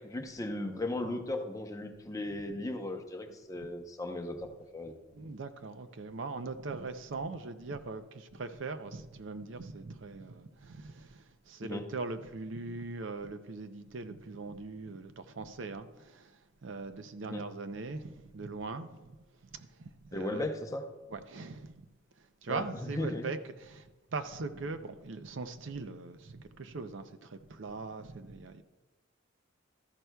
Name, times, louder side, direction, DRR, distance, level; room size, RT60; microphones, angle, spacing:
voice 1, 0.0-5.0 11.6-11.9 17.2-17.4 20.1-20.8 22.5-23.2, left 1 dB, 15° left, 0.7 m, -37 dB
voice 2, 5.1-19.2 19.5-20.4 21.1-21.9 22.2-28.6, right 3 dB, 65° right, 0.6 m, -41 dB
13.0 x 11.0 x 2.3 m
head